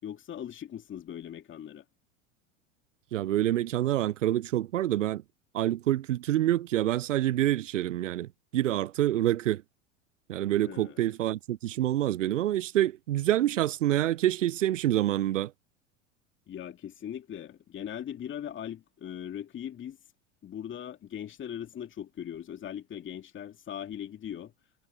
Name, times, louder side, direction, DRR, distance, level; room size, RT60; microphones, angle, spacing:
voice 1, 0.0-1.8 10.6-11.0 16.5-20.0 20.4-24.5, left 10 dB, 30° left, 2.4 m, -40 dB
voice 2, 3.1-5.2 5.5-9.6 10.3-15.5, right 13 dB, 80° right, 0.6 m, -27 dB
figure-of-eight pair, 80°, 37 cm